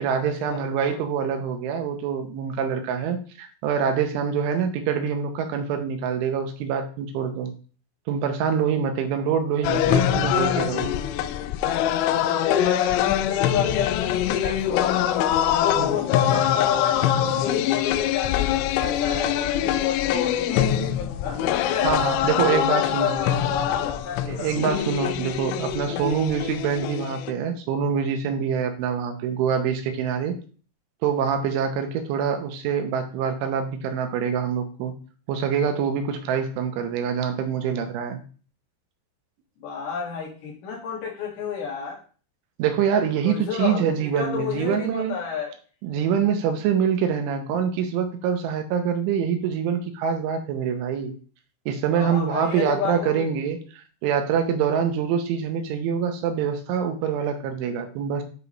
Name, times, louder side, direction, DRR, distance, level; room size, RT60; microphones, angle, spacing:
voice 1, 0.0-7.5 8.1-10.9 15.8-15.9 21.8-23.2 24.3-30.4 31.0-34.9 35.3-38.2 42.6-45.2 45.8-51.1 51.7-58.2, right 7 dB, 85° right, 6 dB, 3.4 m, -25 dB
sound 1, 9.6-27.3, left 10 dB, 85° left, 3.0 m, -24 dB
voice 2, 12.2-15.1 15.4-21.9 22.4-24.6 39.6-42.0 43.2-45.5 52.0-53.2, left 7 dB, 65° left, -3 dB, 4.2 m, -30 dB
9.2 x 4.9 x 3.3 m, 0.40 s
omnidirectional pair, 5.4 m